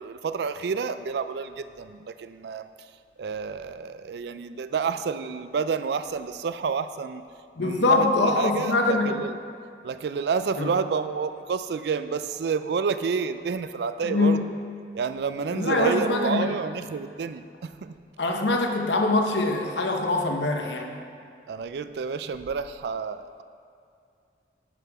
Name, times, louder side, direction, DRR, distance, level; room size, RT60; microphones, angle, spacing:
voice 1, 0.0-2.7 3.2-7.2 7.6-9.4 9.8-14.4 14.9-18.0 21.5-23.4, right 5 dB, 70° right, 11 dB, 0.3 m, -29 dB
voice 2, 7.6-9.3 10.6-10.7 14.1-14.5 15.5-16.5 18.2-21.0, left 2 dB, 90° left, 3 dB, 0.9 m, -23 dB
10.0 x 5.4 x 4.7 m, 2.4 s
head